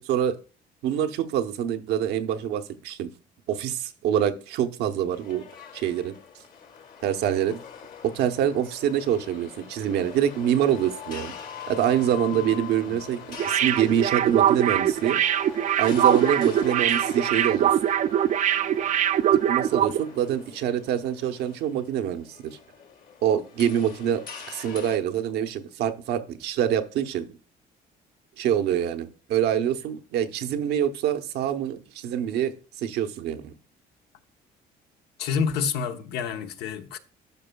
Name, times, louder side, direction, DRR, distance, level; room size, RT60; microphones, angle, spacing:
voice 1, 0.8-3.1 3.5-5.5 5.7-6.2 7.0-7.6 8.1-11.4 11.7-15.2 15.8-17.8 19.5-22.6 23.2-24.2 24.5-27.3 28.4-32.5 32.8-33.5, right 10 dB, 80° right, 0.9 m, -25 dB
sound 1, 5.1-25.0, left 7 dB, 55° left, 2.1 m, -43 dB
sound 2, 13.4-20.0 20.3-20.4, right 10 dB, 45° right, 0.4 m, -22 dB
voice 2, 35.2-37.0, left 6 dB, 75° left, 1.0 m, -28 dB
12.5 x 5.3 x 2.3 m
cardioid pair, 110°, 17 cm